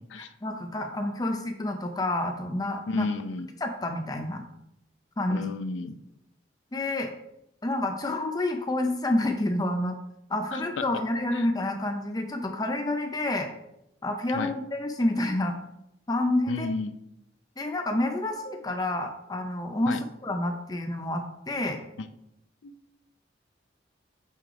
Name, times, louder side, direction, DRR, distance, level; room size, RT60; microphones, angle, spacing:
voice 1, 0.4-3.1 3.6-4.4 5.2-5.4 6.7-7.1 7.6-10.0 10.3-13.5 14.0-15.6 16.1-16.7 17.6-20.0 20.2-21.8, left 1 dB, 20° left, 4 dB, 0.5 m, -28 dB
voice 2, 2.9-3.5 5.3-6.0 10.5-10.6 11.3-11.5 14.3-14.5 16.5-16.9 19.9-20.0 22.6-22.7, left 3 dB, 85° left, 11 dB, 0.5 m, -32 dB
7.5 x 3.3 x 4.6 m, 0.82 s
head